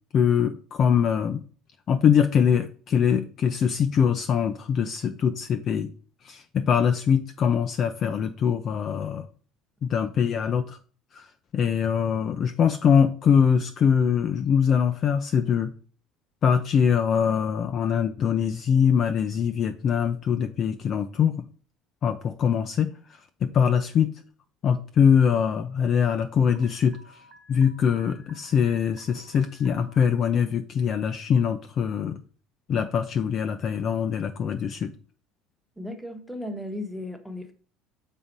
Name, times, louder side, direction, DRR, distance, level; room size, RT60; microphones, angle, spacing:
voice 1, 0.1-1.4 1.9-5.9 6.2-9.3 9.8-10.8 11.1-11.3 11.5-15.7 16.4-21.4 22.0-22.9 23.4-24.1 24.6-27.0 27.5-32.2 32.7-34.9, left 7 dB, 35° left, 0.5 m, -23 dB
Alarm, 26.6-30.0, right 1 dB, 35° right, 1.1 m, -53 dB
voice 2, 35.8-37.5, left 1 dB, ahead, 1.0 m, -35 dB
7.3 x 4.2 x 5.2 m
cardioid pair, 160°, 0 cm